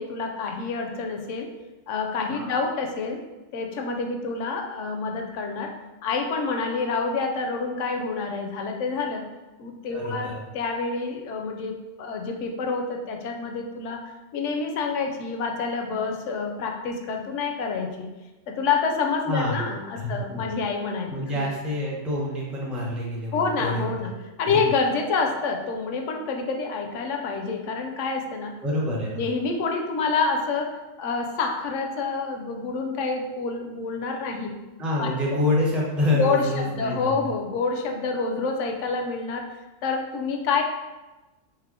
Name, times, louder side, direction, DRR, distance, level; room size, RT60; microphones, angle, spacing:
voice 1, 0.0-1.5 1.9-3.2 3.5-5.7 6.0-9.2 9.6-18.1 18.5-21.5 23.3-24.1 24.4-28.5 29.2-34.6 35.0-35.1 36.1-39.5 39.8-40.6, left 4 dB, 70° left, 3 dB, 0.9 m, -28 dB
voice 2, 2.3-2.6 9.9-10.4 19.3-19.6 19.9-20.4 21.1-24.1 24.5-24.7 28.6-29.2 34.8-37.3, left 1 dB, ahead, -4 dB, 0.4 m, -27 dB
3.4 x 3.1 x 3.6 m, 1.1 s
omnidirectional pair, 1.4 m